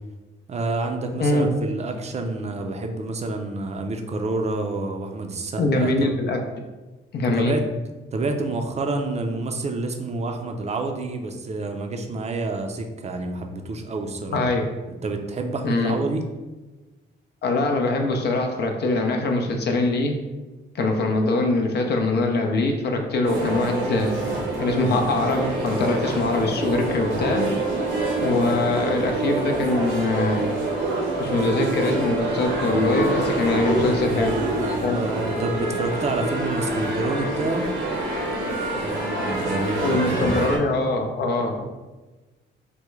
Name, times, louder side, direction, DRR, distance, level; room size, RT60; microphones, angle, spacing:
voice 1, 0.5-6.1 7.3-7.6 8.1-14.4 15.0-16.2 33.9-37.7 38.8-40.4, right 2 dB, 35° right, 4 dB, 0.4 m, -28 dB
voice 2, 5.6-6.4 7.1-7.5 14.3-14.7 15.6-15.9 17.4-20.2 20.7-24.1 24.6-27.5 28.2-30.5 31.2-34.4 34.8-35.0 39.8-41.7, left 2 dB, 55° left, 3 dB, 0.5 m, -23 dB
sound 1, 23.2-40.6, right 1 dB, 80° right, 0.8 m, -26 dB
3.5 x 2.2 x 3.1 m, 1.2 s
cardioid pair, 90°, 20 cm